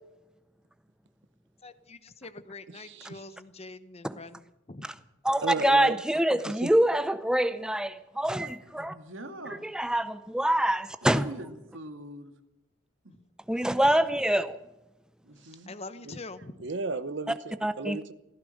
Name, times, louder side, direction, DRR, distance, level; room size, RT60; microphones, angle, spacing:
voice 1, 1.6-4.4 4.7-4.9 15.7-16.5, left 3 dB, 35° left, 0.9 m, -44 dB
voice 2, 2.7-3.2 5.4-6.0 6.4-6.7 15.4-15.6 16.0-16.2 16.6-18.1, right 3 dB, 65° right, 0.8 m, -35 dB
voice 3, 5.2-8.9 9.6-11.3 13.5-14.6 17.6-18.0, right 1 dB, 5° right, 0.6 m, -25 dB
voice 4, 8.9-9.7 11.0-12.3 15.2-15.7, right 1 dB, 85° right, 2.0 m, -43 dB
15.5 x 14.5 x 6.5 m
head